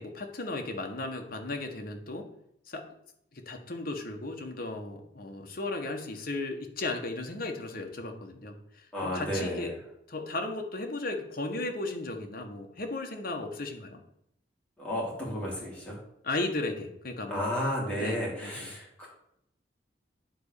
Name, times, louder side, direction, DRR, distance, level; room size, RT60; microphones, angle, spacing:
voice 1, 0.0-2.3 2.7-2.8 3.3-9.7 10.1-14.0 16.2-17.4 18.0-18.7, left 2 dB, 55° left, 3 dB, 1.4 m, -35 dB
voice 2, 8.9-9.8 14.8-16.0 17.3-19.1, equal, 5° left, -5 dB, 3.4 m, -32 dB
9.8 x 4.2 x 6.7 m, 0.76 s
head